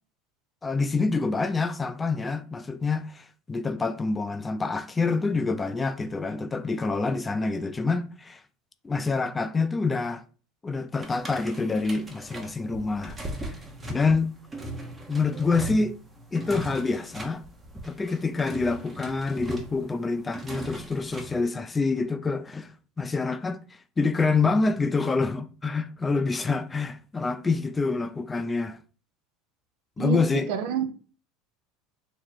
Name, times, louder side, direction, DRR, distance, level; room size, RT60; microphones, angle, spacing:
voice 1, 0.6-8.4 8.8-10.2 10.6-13.2 13.9-14.3 15.1-16.0 16.3-17.4 17.7-22.7 23.0-23.6 24.0-28.8 30.0-30.5, left 4 dB, 20° left, 0.4 m, -26 dB
sound 1, 11.0-21.5, right 1 dB, 20° right, 0.8 m, -39 dB
voice 2, 30.5-30.9, right 7 dB, 70° right, 0.5 m, -27 dB
2.9 x 2.1 x 4.0 m
hypercardioid pair, 95°, 0 cm